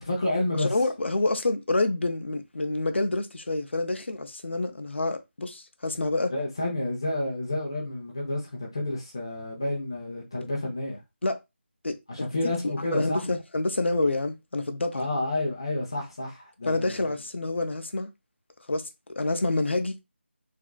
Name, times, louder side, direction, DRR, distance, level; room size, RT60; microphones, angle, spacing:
voice 1, 0.0-0.7 6.3-11.0 12.1-13.2 14.9-17.1, left 1 dB, 20° left, 0.7 m, -30 dB
voice 2, 0.5-6.3 11.2-11.4 11.8-12.3 12.8-15.1 16.7-18.1 18.7-20.0, left 2 dB, 70° left, 0.6 m, -28 dB
3.5 x 2.4 x 2.3 m
figure-of-eight pair, 180°, 7 cm